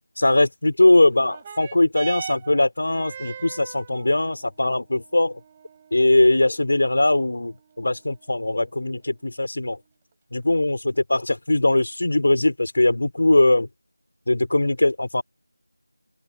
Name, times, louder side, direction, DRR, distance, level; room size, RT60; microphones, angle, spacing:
voice 1, 0.2-5.4 5.9-9.8 10.3-13.7 14.3-15.2, left 2 dB, 45° left, 6.0 m, -20 dB
sound 1, 1.1-10.1 11.0-11.1, right 8 dB, 15° right, 6.2 m, -42 dB
open air
figure-of-eight pair, 170°, 0 cm